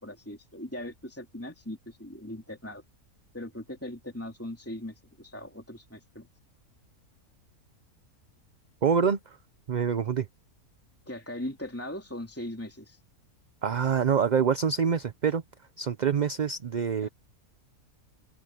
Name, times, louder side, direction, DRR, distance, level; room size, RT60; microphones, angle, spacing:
voice 1, 0.0-2.8 3.3-6.3 11.1-13.0 17.0-17.1, left 1 dB, 10° left, 3.2 m, -39 dB
voice 2, 8.8-9.2 9.7-10.3 13.6-15.4 15.8-17.1, right 7 dB, 45° right, 0.6 m, -25 dB
omnidirectional pair, 1.5 m